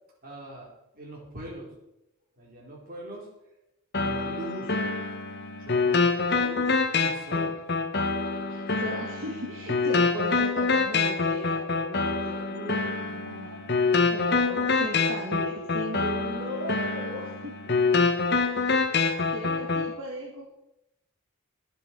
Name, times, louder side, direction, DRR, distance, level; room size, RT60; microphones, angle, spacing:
voice 1, 0.2-1.7 2.4-3.3 4.0-4.8 5.6-7.6, right 1 dB, 40° right, -2 dB, 4.4 m, -41 dB
sound 1, 3.9-19.9, left 4 dB, 50° left, 1.2 m, -26 dB
voice 2, 8.5-13.6 14.1-17.6 18.5-20.5, right 1 dB, 65° right, -2 dB, 2.1 m, -37 dB
21.5 x 7.8 x 4.7 m, 0.87 s
head